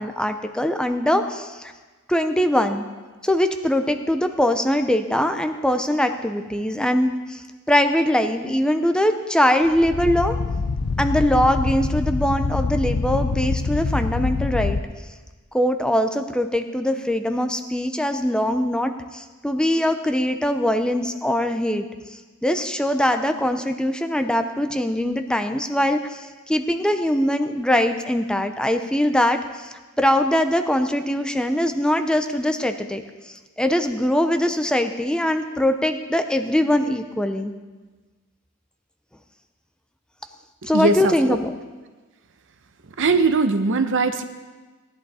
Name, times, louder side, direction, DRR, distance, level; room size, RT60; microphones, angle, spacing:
voice 1, 0.0-1.7 2.1-2.9 3.2-10.4 11.0-14.8 15.5-37.5 40.6-41.6, left 1 dB, 5° left, 7 dB, 0.6 m, -22 dB
sound 1, 9.6-14.8, left 4 dB, 85° left, 0.6 m, -25 dB
voice 2, 40.7-41.4 43.0-44.2, right 3 dB, 60° right, 9 dB, 0.8 m, -20 dB
18.0 x 11.0 x 4.2 m, 1.3 s
head